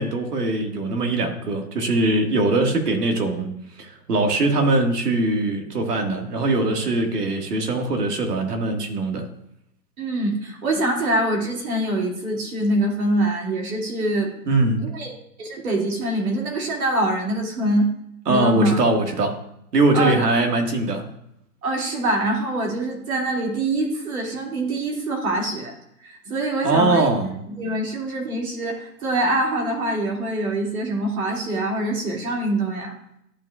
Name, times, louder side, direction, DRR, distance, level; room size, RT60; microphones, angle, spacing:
voice 1, 0.0-3.5 3.8-9.2 14.5-14.8 18.3-19.4 19.7-21.0 26.6-27.3, right 2 dB, 80° right, 3 dB, 1.9 m, -21 dB
voice 2, 10.0-14.3 14.8-15.1 15.4-17.9 18.3-18.8 19.9-20.2 21.6-25.7 26.0-27.1 27.5-33.0, right 1 dB, 65° right, -1 dB, 2.6 m, -24 dB
12.5 x 5.1 x 2.4 m, 0.77 s
hypercardioid pair, 155°, 47 cm